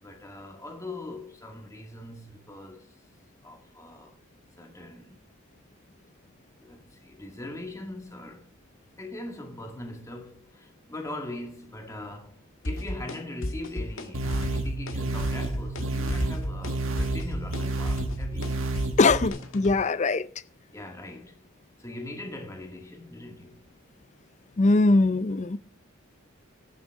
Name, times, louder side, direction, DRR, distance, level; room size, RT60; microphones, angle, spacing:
voice 1, 0.0-3.0 3.4-4.2 4.6-5.2 6.6-8.5 9.0-18.5 20.7-21.4 21.8-23.6, left 2 dB, 15° left, 2.1 m, -41 dB
sound 1, 12.6-13.2 13.4-14.1 14.3-14.9 15.2-15.8 16.1-19.8, equal, 85° left, 1.6 m, -32 dB
sound 2, 14.1-19.3, right 2 dB, 75° right, 1.6 m, -30 dB
voice 2, 19.0-20.3 24.6-25.6, left 3 dB, 35° left, 0.5 m, -21 dB
18.0 x 7.4 x 3.6 m
head